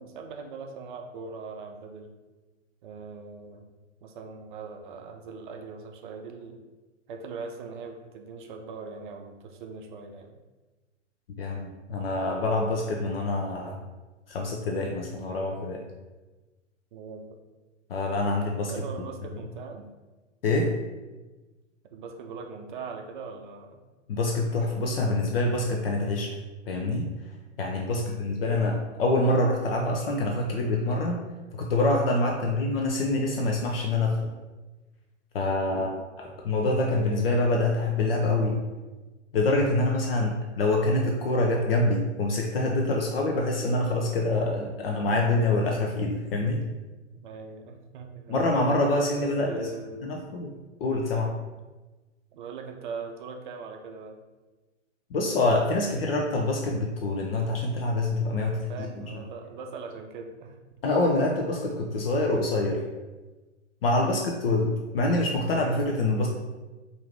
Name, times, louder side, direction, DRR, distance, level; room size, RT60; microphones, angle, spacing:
voice 1, 0.0-2.1 2.8-3.7 4.0-6.6 7.1-10.3 16.9-17.3 18.7-19.9 21.8-23.8 27.9-28.2 32.4-32.6 35.7-36.1 40.1-40.4 47.2-48.5 49.1-50.3 51.1-51.3 52.3-54.2 58.4-60.6 63.9-64.2, right 4 dB, 45° right, 4 dB, 0.5 m, -41 dB
voice 2, 11.4-13.8 14.3-15.8 17.9-18.7 20.4-20.7 24.1-26.3 26.7-27.1 27.6-31.2 31.5-34.2 35.3-35.9 36.2-38.6 39.3-46.6 48.3-49.7 50.0-50.5 50.8-51.3 55.1-58.9 60.8-62.8 63.8-66.3, left 2 dB, 50° left, 1 dB, 0.6 m, -26 dB
4.6 x 2.7 x 3.3 m, 1.2 s
figure-of-eight pair, 110°, 37 cm